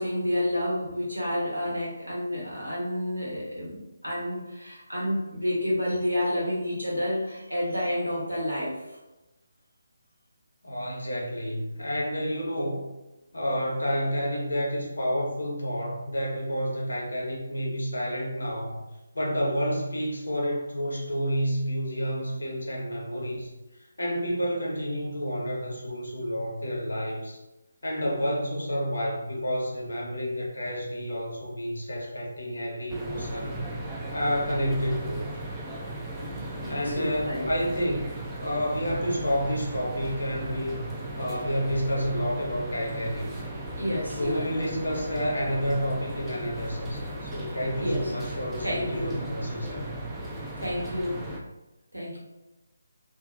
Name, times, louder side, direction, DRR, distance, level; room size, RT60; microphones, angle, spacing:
voice 1, 0.0-8.8 36.2-37.5 43.7-44.6 47.8-48.1 48.6-49.3 50.6-51.4 51.9-52.2, left 1 dB, 85° right, -5 dB, 1.1 m, -30 dB
voice 2, 10.6-12.9 13.3-18.8 19.1-23.5 24.0-27.4 27.8-33.6 34.1-35.3 36.7-38.1 38.4-40.8 41.2-43.3 44.2-49.9, equal, 70° left, -2 dB, 0.8 m, -29 dB
sound 1, 32.9-51.4, right 1 dB, 10° right, 0.3 m, -37 dB
2.7 x 2.0 x 2.5 m, 1.0 s
figure-of-eight pair, 150°, 0 cm